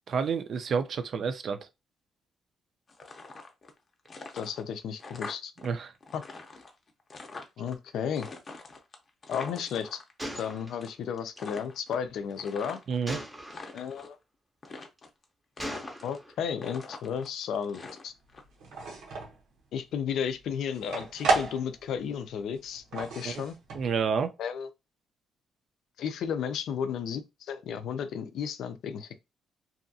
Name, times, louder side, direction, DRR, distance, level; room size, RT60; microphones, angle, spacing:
voice 1, 0.1-1.7 5.6-5.9 12.9-13.2 23.2-23.4 23.7-24.3, right 6 dB, 55° right, 0.4 m, -29 dB
sound 1, 2.9-3.8 4.1-5.7 5.9-7.8 8.2-10.5 10.8-11.1 11.4-13.0 13.4-14.1 14.6-15.2 15.6-16.3 16.6-18.4, left 3 dB, 35° left, 0.6 m, -44 dB
voice 2, 4.3-5.5 6.1-6.2 7.6-8.3 9.3-10.0 10.3-12.8 13.7-14.2 16.0-18.1 19.7-23.6 24.4-24.7 26.0-29.2, left 7 dB, 75° left, 0.4 m, -33 dB
Gunshot gunfire, 10.2-11.5 13.1-13.8 14.6-15.0 15.6-16.4, equal, 5° right, 0.6 m, -40 dB
sound 2, 18.4-19.4 19.9-22.1 22.3-24.1, right 3 dB, 90° right, 0.9 m, -32 dB
2.7 x 2.4 x 2.6 m
cardioid pair, 120°, 0 cm